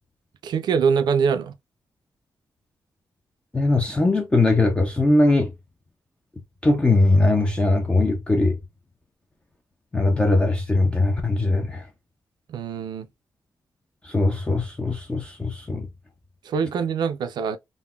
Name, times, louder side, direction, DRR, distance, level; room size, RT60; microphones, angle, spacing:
voice 1, 0.4-1.5 12.5-13.1 16.4-17.6, right 6 dB, 75° right, 0.4 m, -23 dB
voice 2, 3.5-5.5 6.6-8.6 9.9-11.8 14.0-15.9, left 2 dB, 15° left, 0.4 m, -20 dB
3.8 x 2.1 x 2.2 m
wide cardioid pair, 160°, 7 cm